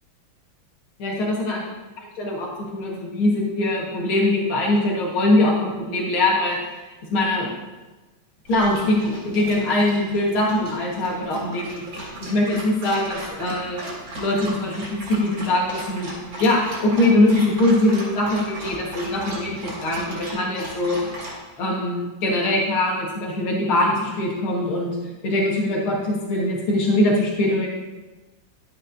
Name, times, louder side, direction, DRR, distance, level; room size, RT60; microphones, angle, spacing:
voice 1, 1.0-1.6 2.2-6.6 7.1-7.5 8.5-11.8 12.2-13.8 14.2-21.1 21.6-25.0 25.2-27.7, left 1 dB, 80° left, -3 dB, 2.4 m, -22 dB
Dog, 8.5-21.4, right 1 dB, 65° right, 3.1 m, -36 dB
11.5 x 8.3 x 2.6 m, 1.1 s
omnidirectional pair, 2.3 m